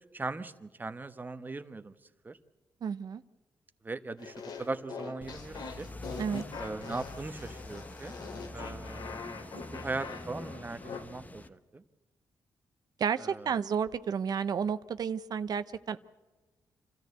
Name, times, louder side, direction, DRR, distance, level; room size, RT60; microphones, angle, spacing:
voice 1, 0.1-1.9 2.2-2.4 3.8-5.9 6.6-8.1 8.5-9.1 9.7-11.8 13.2-13.5, right 3 dB, 25° right, 11 dB, 1.0 m, -39 dB
voice 2, 2.8-3.2 6.2-6.4 13.0-16.0, right 7 dB, 60° right, 12 dB, 0.7 m, -31 dB
sound 1, 4.2-11.0, left 4 dB, 75° left, 2.4 m, -43 dB
sound 2, 5.2-11.5, left 2 dB, 20° left, 1.1 m, -45 dB
27.5 x 13.5 x 8.0 m, 1.2 s
cardioid pair, 90°, 7 cm